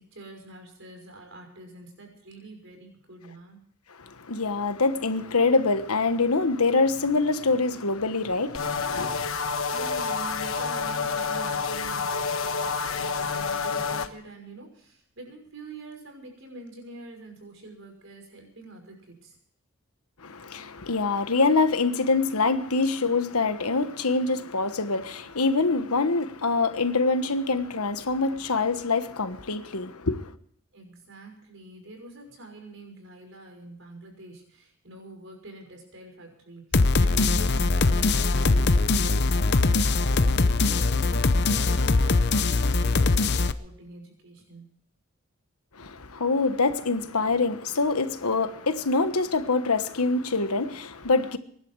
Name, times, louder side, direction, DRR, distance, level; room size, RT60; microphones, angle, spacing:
voice 1, 0.0-3.6 9.7-19.4 30.7-40.0 40.3-44.8, right 2 dB, 60° right, 5.9 m, -45 dB
voice 2, 4.3-9.2 20.2-30.3 45.8-51.4, left 3 dB, 90° left, 1.3 m, -25 dB
sound 1, 8.5-14.1, left 5 dB, 70° left, 1.2 m, -28 dB
sound 2, 36.7-43.5, left 3 dB, 50° left, 0.8 m, -22 dB
24.0 x 11.5 x 4.8 m
head